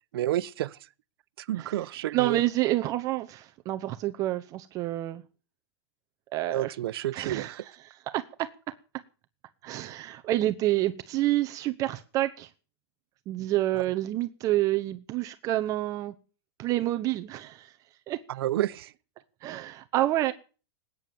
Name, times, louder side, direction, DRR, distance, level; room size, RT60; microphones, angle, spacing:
voice 1, 0.1-0.8 1.4-2.4 6.5-7.6 13.7-13.8 18.3-18.9, right 13 dB, 65° right, 0.9 m, -30 dB
voice 2, 2.1-5.2 6.3-6.7 7.1-8.5 9.6-12.5 13.3-16.1 16.6-17.8 18.1-18.2 19.4-20.3, right 15 dB, 25° right, 0.8 m, -28 dB
19.5 x 9.3 x 7.0 m
supercardioid pair, 170°, 14 cm